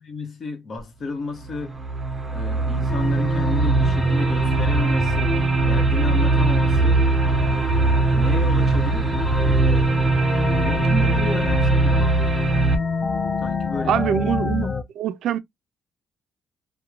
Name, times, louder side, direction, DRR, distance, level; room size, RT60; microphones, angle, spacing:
voice 1, 0.0-1.8 2.3-5.4 5.6-7.0 7.4-12.2 12.5-12.7 13.4-14.3, left 3 dB, 50° left, 0.9 m, -32 dB
sound 1, 0.8-0.9 1.4-12.8, right 3 dB, 20° right, 0.6 m, -21 dB
sound 2, 2.9-14.8, left 3 dB, 30° left, 0.5 m, -27 dB
voice 2, 13.8-14.7 15.0-15.4, right 10 dB, 75° right, 0.3 m, -23 dB
2.9 x 2.1 x 2.4 m
cardioid pair, 90°, 0 cm